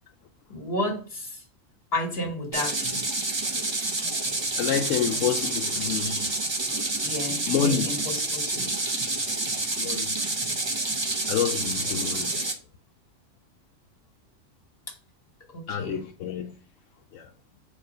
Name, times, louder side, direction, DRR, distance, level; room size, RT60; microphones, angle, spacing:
voice 1, 0.5-1.4 1.9-3.0 7.0-8.8 15.5-16.0, left 1 dB, 50° left, 1.8 m, -32 dB
sound 1, 2.5-12.5, right 2 dB, 25° right, 0.7 m, -28 dB
voice 2, 4.6-6.4 7.5-7.9 9.7-10.1 11.3-12.3 15.7-16.5 17.1-17.3, left 8 dB, 80° left, 1.0 m, -28 dB
6.0 x 3.0 x 5.1 m
omnidirectional pair, 1.3 m